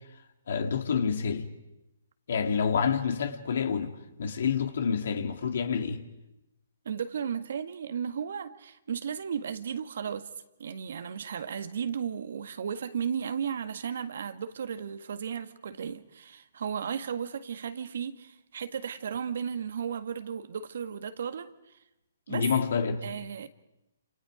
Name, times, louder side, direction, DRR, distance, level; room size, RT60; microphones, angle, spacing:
voice 1, 0.5-1.5 2.3-3.9 4.2-6.0 22.3-23.0, left 6 dB, 65° left, 2.4 m, -28 dB
voice 2, 6.8-10.3 10.6-21.5 22.3-22.4 23.0-23.5, right 7 dB, 65° right, 1.7 m, -34 dB
29.0 x 27.5 x 5.1 m
hypercardioid pair, 135°, 0 cm